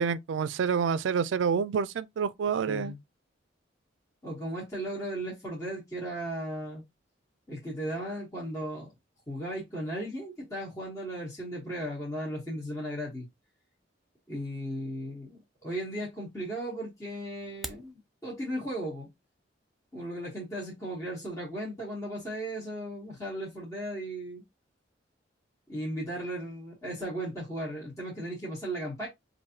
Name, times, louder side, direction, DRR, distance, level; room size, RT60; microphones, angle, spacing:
voice 1, 0.0-2.9, right 6 dB, 80° right, 0.3 m, -28 dB
voice 2, 2.7-3.0 4.2-6.8 7.5-8.9 9.3-13.3 14.3-19.1 19.9-24.4 25.7-29.1, right 1 dB, 15° left, 1.1 m, -36 dB
sound 1, 17.4-17.9, right 1 dB, ahead, 0.3 m, -41 dB
4.6 x 2.6 x 2.7 m
head